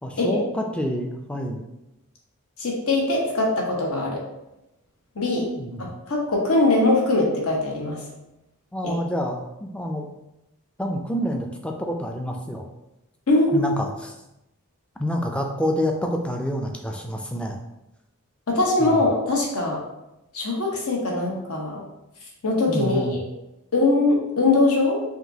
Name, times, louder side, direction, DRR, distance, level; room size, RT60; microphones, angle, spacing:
voice 1, 0.0-1.6 5.6-5.9 8.7-10.1 10.8-12.7 13.5-14.2 15.0-17.6 18.8-19.0 22.7-23.2, equal, 5° left, 2 dB, 0.3 m, -28 dB
voice 2, 2.6-4.2 5.1-5.5 6.1-8.0 8.8-8.9 13.3-13.8 18.5-19.8 20.3-21.8 22.4-23.2 23.7-25.0, left 2 dB, 75° left, -1 dB, 1.0 m, -21 dB
4.9 x 3.0 x 2.7 m, 0.92 s
head